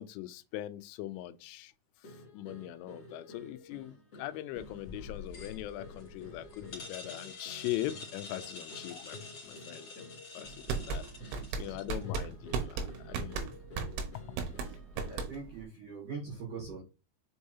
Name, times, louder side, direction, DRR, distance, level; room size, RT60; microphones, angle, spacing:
voice 1, 0.0-1.7 2.0-13.5 14.1-14.2, left 14 dB, 85° left, 3.1 m, -41 dB
sound 1, 2.0-15.3, left 2 dB, 65° left, 1.4 m, -52 dB
sound 2, 4.6-12.0, left 4 dB, 35° left, 2.5 m, -48 dB
sound 3, 10.5-15.6, right 5 dB, 80° right, 3.4 m, -35 dB
voice 2, 10.9-11.8 14.7-14.8 15.1-16.8, right 5 dB, 65° right, 2.1 m, -43 dB
7.3 x 4.7 x 2.8 m
omnidirectional pair, 5.6 m